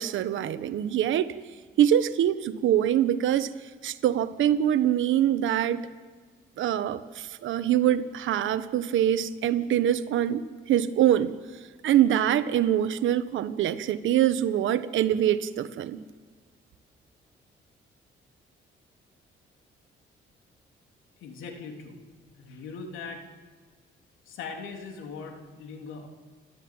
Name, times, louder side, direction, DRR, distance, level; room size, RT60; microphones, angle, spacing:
voice 1, 0.0-1.3 1.8-3.5 3.8-5.8 6.6-10.4 10.7-11.3 11.8-16.0, right 11 dB, 80° right, 12 dB, 1.2 m, -24 dB
voice 2, 21.2-22.0 22.3-23.2 24.2-26.1, left 4 dB, 85° left, 3 dB, 3.3 m, -40 dB
30.0 x 13.0 x 8.9 m, 1.5 s
cardioid pair, 90°, 20 cm